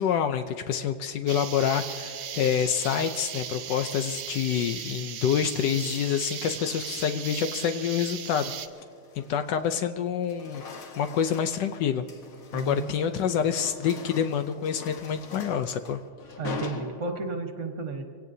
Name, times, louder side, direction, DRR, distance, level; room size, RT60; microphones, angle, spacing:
voice 1, 0.0-8.5 9.2-10.6 11.0-12.0 12.5-16.0, left 8 dB, 75° left, 9 dB, 1.2 m, -27 dB
sound 1, 1.3-8.7, right 9 dB, 85° right, 1.5 m, -37 dB
sound 2, 4.1-4.6 5.7-7.3 7.7-8.0 8.5-9.9 10.2-17.5, left 5 dB, 55° left, 1.5 m, -44 dB
voice 2, 12.5-12.9 16.4-18.0, right 3 dB, 45° right, 4 dB, 1.5 m, -32 dB
24.0 x 17.5 x 2.7 m, 2.2 s
omnidirectional pair, 1.9 m